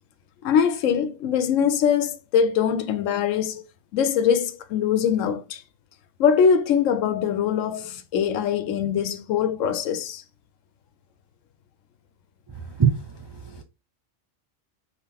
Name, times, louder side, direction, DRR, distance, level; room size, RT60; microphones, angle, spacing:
voice 1, 0.4-3.6 3.9-5.6 6.2-10.2, left 7 dB, 85° left, 1.0 m, -22 dB
voice 2, 13.3-13.6, right 7 dB, 35° right, 0.4 m, -22 dB
4.2 x 3.7 x 2.8 m
omnidirectional pair, 1.3 m